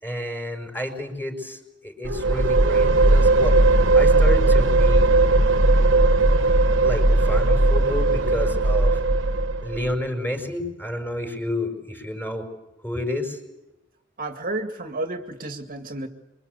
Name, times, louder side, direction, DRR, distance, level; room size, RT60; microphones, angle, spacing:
voice 1, 0.0-5.1 6.8-9.0 9.6-12.5 12.8-13.4, left 1 dB, 10° left, 3 dB, 5.7 m, -30 dB
sound 1, 2.0-9.9, right 2 dB, 65° right, 1.3 m, -18 dB
voice 2, 14.2-16.1, right 2 dB, 45° right, 5 dB, 2.1 m, -31 dB
27.0 x 24.5 x 8.3 m, 0.94 s
head